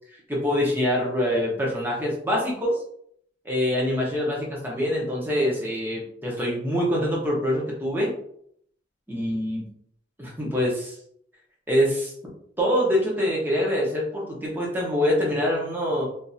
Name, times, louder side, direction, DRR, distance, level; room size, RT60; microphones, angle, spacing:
voice 1, 0.3-2.8 3.4-8.1 9.1-9.7 10.2-11.0 11.7-12.1 12.6-16.0, equal, 10° right, -4 dB, 0.9 m, -25 dB
3.6 x 2.6 x 2.7 m, 0.67 s
head